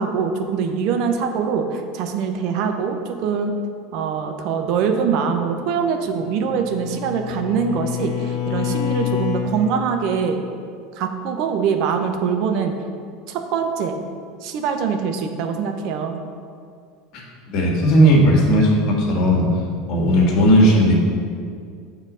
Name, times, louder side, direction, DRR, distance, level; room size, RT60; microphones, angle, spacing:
voice 1, 0.0-3.6 3.9-10.4 10.9-12.7 13.3-14.0 14.4-16.2, right 6 dB, 60° right, 5 dB, 0.7 m, -23 dB
Bowed string instrument, 6.1-9.5, left 9 dB, 70° left, 1.2 m, -26 dB
voice 2, 17.5-19.4 19.9-20.9, equal, 55° left, -1 dB, 1.6 m, -15 dB
5.4 x 4.0 x 6.1 m, 2.2 s
hypercardioid pair, 95°, 0 cm